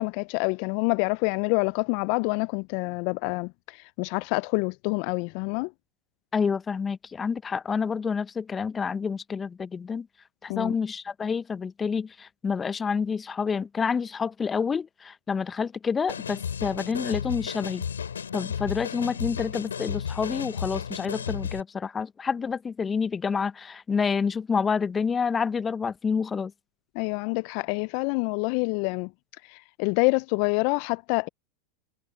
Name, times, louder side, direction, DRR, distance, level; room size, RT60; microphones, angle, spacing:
voice 1, 0.0-5.7 10.5-10.8 27.0-29.1 29.4-31.3, left 31 dB, 60° left, 0.4 m, -27 dB
voice 2, 6.3-10.1 10.4-17.8 18.3-26.5, left 6 dB, 25° left, 1.0 m, -28 dB
sound 1, 16.1-21.6, left 7 dB, 90° left, 3.1 m, -33 dB
hypercardioid pair, 90°, 0 cm